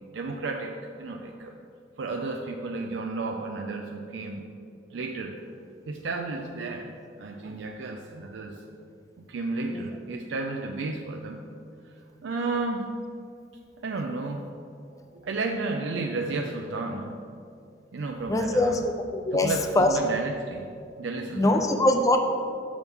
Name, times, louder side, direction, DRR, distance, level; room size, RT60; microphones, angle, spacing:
voice 1, 0.1-1.5 2.0-4.5 4.9-5.4 5.9-6.9 7.2-8.6 9.3-11.5 12.2-13.0 13.8-14.4 15.1-17.2 17.9-18.8 19.3-20.7 21.0-21.7, right 3 dB, 85° right, 2 dB, 0.4 m, -32 dB
voice 2, 18.3-18.8 19.1-20.0 21.3-22.2, left 1 dB, 20° left, 5 dB, 0.4 m, -22 dB
6.9 x 6.2 x 3.5 m, 2.5 s
head